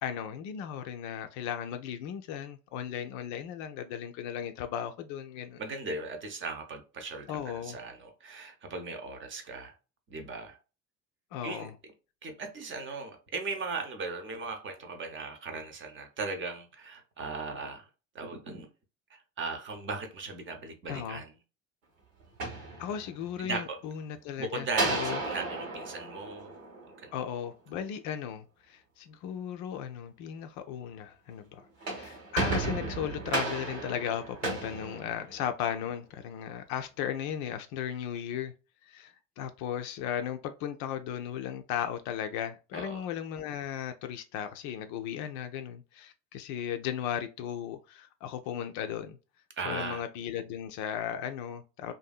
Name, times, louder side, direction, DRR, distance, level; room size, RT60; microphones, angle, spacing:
voice 1, 0.0-5.6 7.3-7.8 11.3-11.7 20.9-21.2 22.8-25.2 27.1-38.5 38.8-49.2 49.6-51.9, left 9 dB, 50° left, 0.4 m, -36 dB
voice 2, 5.6-9.7 10.1-10.6 11.4-11.7 12.2-17.9 18.1-18.7 19.1-21.3 23.4-23.8 24.4-26.5 27.0-27.1 42.7-43.0 49.6-50.0, right 3 dB, 30° right, 0.8 m, -38 dB
sound 1, 22.2-23.4 24.7-27.2 31.6-35.7, right 2 dB, 75° right, 1.2 m, -34 dB
2.6 x 2.6 x 2.3 m
figure-of-eight pair, 65°, 39 cm